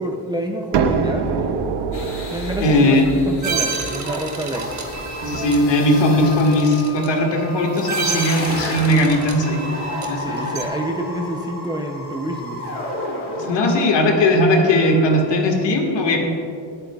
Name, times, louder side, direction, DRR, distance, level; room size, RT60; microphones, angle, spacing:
voice 1, 0.0-1.7 2.3-4.7 10.2-12.7, right 1 dB, 10° right, 1 dB, 0.5 m, -28 dB
sound 1, 0.7-6.3, right 5 dB, 60° right, 0.8 m, -26 dB
sound 2, 1.9-15.2, left 2 dB, 35° left, 2.9 m, -33 dB
voice 2, 2.6-3.1 5.3-9.7 10.0-10.4 13.4-16.2, left 1 dB, 65° left, 1 dB, 1.8 m, -18 dB
sound 3, 3.4-10.7, right 4 dB, 35° right, 1.2 m, -29 dB
23.0 x 8.8 x 2.3 m, 2.5 s
cardioid pair, 165°, 46 cm